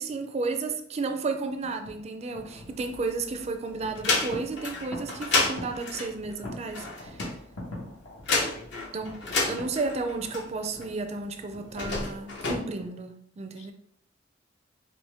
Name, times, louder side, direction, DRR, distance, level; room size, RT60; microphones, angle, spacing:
voice 1, 0.0-7.3 8.9-9.2 9.5-13.7, right 3 dB, 35° right, 0.4 m, -33 dB
sound 1, 1.4-13.0, left 1 dB, 85° left, 1.5 m, -45 dB
sound 2, 2.5-3.4 3.8-10.9 11.6-12.6, left 3 dB, 65° left, 0.8 m, -30 dB
voice 2, 8.3-8.9 13.6-13.7, left 4 dB, 35° left, 0.5 m, -46 dB
4.4 x 2.5 x 3.4 m
head